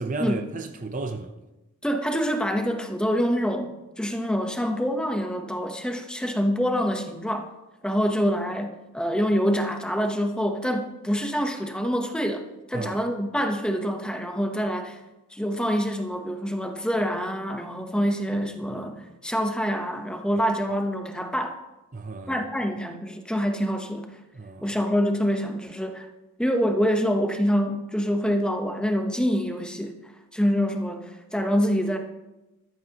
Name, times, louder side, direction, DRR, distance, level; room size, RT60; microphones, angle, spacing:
voice 1, 0.0-1.3 12.7-13.0 21.9-22.4 24.3-24.7, right 3 dB, 35° right, 0.6 m, -33 dB
voice 2, 1.8-7.5 7.8-15.0 15.3-21.6 22.3-24.1 24.6-26.1 26.4-32.0, equal, 5° left, 0.9 m, -26 dB
14.0 x 13.0 x 2.9 m
head